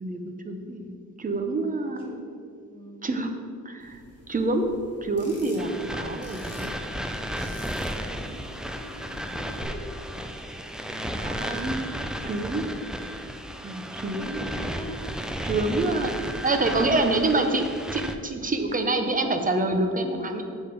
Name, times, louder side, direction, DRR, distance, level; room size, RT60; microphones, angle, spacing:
voice 1, 0.0-2.2 3.0-3.3 3.6-4.0 4.3-6.8 11.2-11.8 12.2-12.6 13.6-14.4 15.4-16.1 16.4-17.6 17.9-20.4, right 2 dB, 25° right, 5 dB, 0.7 m, -26 dB
voice 2, 2.6-3.1 7.9-9.8 11.0-11.9 13.3-13.6 14.1-16.3 16.8-17.1 18.7-18.9, equal, 15° left, -4 dB, 1.7 m, -44 dB
sound 1, 3.8-9.6, left 2 dB, 45° left, 1.6 m, -49 dB
sound 2, 5.6-18.2, equal, ahead, 0.3 m, -34 dB
7.0 x 6.7 x 5.1 m, 2.3 s
wide cardioid pair, 160°, 32 cm